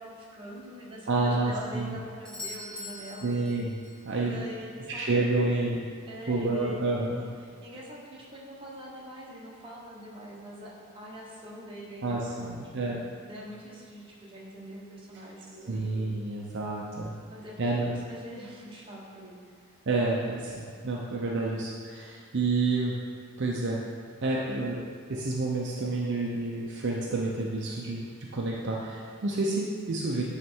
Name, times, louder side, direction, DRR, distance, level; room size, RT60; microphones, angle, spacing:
voice 1, 0.0-3.4 4.1-5.1 5.4-5.5 6.1-13.0 13.2-15.9 17.3-19.6 29.4-29.6, equal, 25° right, -5 dB, 1.2 m, -44 dB
voice 2, 1.1-2.0 3.2-3.8 4.0-4.4 4.9-5.8 6.3-7.2 12.0-13.0 15.7-17.2 17.6-17.9 19.9-23.0 23.4-23.8 24.2-24.8 25.1-28.0 28.3-30.2, right 3 dB, 55° right, -3 dB, 0.6 m, -29 dB
Doorbell, 2.2-4.1 8.2-8.3, left 2 dB, 5° left, 0.8 m, -42 dB
9.4 x 3.3 x 4.5 m, 2.1 s
head